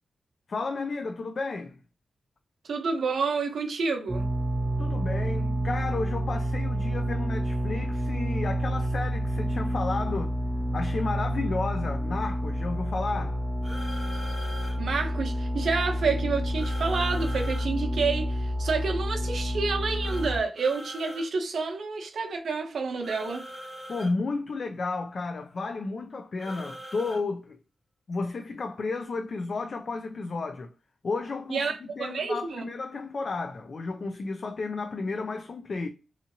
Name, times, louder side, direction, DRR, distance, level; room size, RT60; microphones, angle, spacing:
voice 1, 0.5-1.8 4.8-10.3 10.7-13.4 23.9-27.6 28.1-30.7 31.0-31.7 32.0-35.9, left 3 dB, 50° left, 0.3 m, -32 dB
voice 2, 2.7-4.3 14.8-23.4 31.5-32.6, right 4 dB, 70° right, 0.8 m, -29 dB
sound 1, 4.1-20.4, equal, 30° right, 0.4 m, -29 dB
sound 2, 13.6-14.8 16.6-17.7 20.0-21.3 23.0-24.1 26.4-27.2, equal, 15° left, 1.0 m, -41 dB
2.7 x 2.5 x 2.7 m
wide cardioid pair, 110°, 0 cm